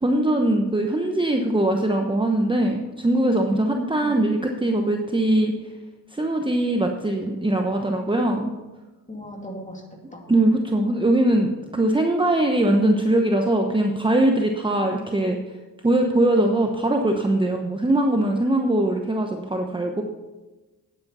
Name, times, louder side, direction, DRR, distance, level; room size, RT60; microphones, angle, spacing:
voice 1, 0.0-5.5 6.1-8.5 10.3-15.4 15.8-20.0, right 1 dB, 15° right, 2 dB, 1.0 m, -21 dB
voice 2, 3.5-4.2 9.1-9.8 10.1-10.2 16.2-16.5, equal, 20° left, 1 dB, 2.5 m, -33 dB
9.7 x 9.2 x 5.6 m, 1.2 s
cardioid pair, 85°, 39 cm